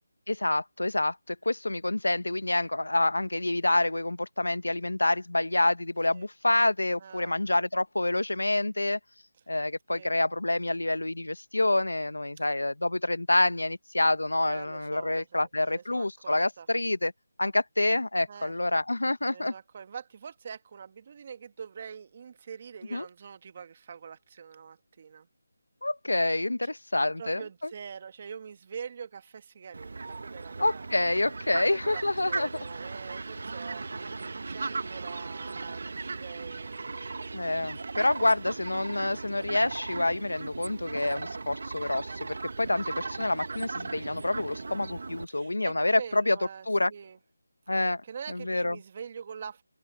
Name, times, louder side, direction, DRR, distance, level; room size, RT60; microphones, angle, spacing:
voice 1, 0.3-9.0 9.5-17.1 17.4-19.5 22.9-23.1 25.8-27.4 30.6-32.5 37.3-46.4 46.7-46.9 47.7-48.0 48.3-48.8, left 2 dB, 85° left, 1.1 m, -27 dB
voice 2, 7.0-7.6 9.9-10.1 12.4-12.5 14.4-16.7 18.3-18.5 19.3-25.3 26.6-26.8 27.2-30.8 31.5-37.3 45.3-47.2 48.0-49.6, right 7 dB, 35° right, 1.9 m, -44 dB
Fowl, 29.7-45.2, right 3 dB, 60° right, 1.3 m, -37 dB
figure-of-eight pair, 165°, 0 cm